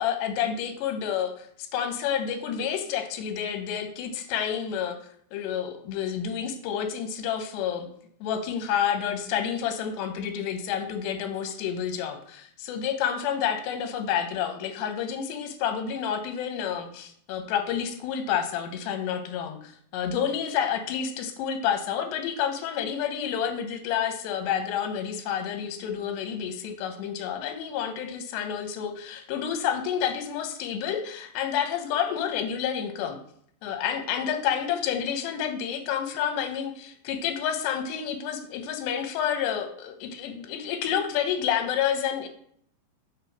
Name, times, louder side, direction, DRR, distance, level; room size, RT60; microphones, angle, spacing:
voice 1, 0.0-1.5 1.7-4.9 5.3-7.9 8.2-33.2 33.6-42.3, left 8 dB, 90° left, 7 dB, 3.0 m, -29 dB
8.1 x 3.2 x 5.9 m, 0.64 s
omnidirectional pair, 4.7 m